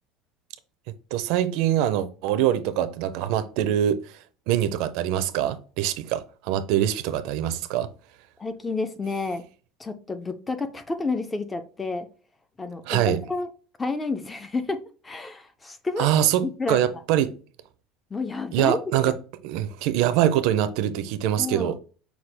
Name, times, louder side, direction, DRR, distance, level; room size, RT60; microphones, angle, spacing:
voice 1, 1.1-7.9 12.9-13.2 16.0-17.3 18.5-19.2 19.4-21.8, right 11 dB, 55° right, 0.5 m, -24 dB
voice 2, 8.4-9.4 9.8-12.1 12.6-13.5 13.8-14.8 15.0-16.1 16.4-16.8 18.1-18.8 19.0-19.1 21.4-21.7, left 3 dB, 10° left, 0.3 m, -30 dB
5.9 x 2.2 x 3.3 m
cardioid pair, 175°, 0 cm